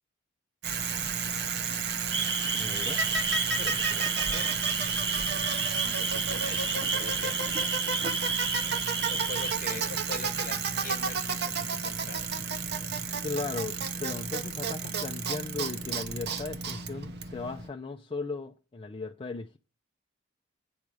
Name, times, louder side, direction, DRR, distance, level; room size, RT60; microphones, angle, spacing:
Bicycle, 0.6-17.7, right 5 dB, 55° right, 0.9 m, -31 dB
sound 1, 2.1-9.5, right 3 dB, 25° right, 0.9 m, -32 dB
voice 1, 2.5-3.0 13.2-19.6, left 3 dB, 25° left, 0.5 m, -37 dB
voice 2, 3.6-4.5 5.8-7.4 9.1-11.5 11.8-12.4, left 3 dB, 40° left, 1.0 m, -42 dB
8.7 x 5.3 x 4.7 m
head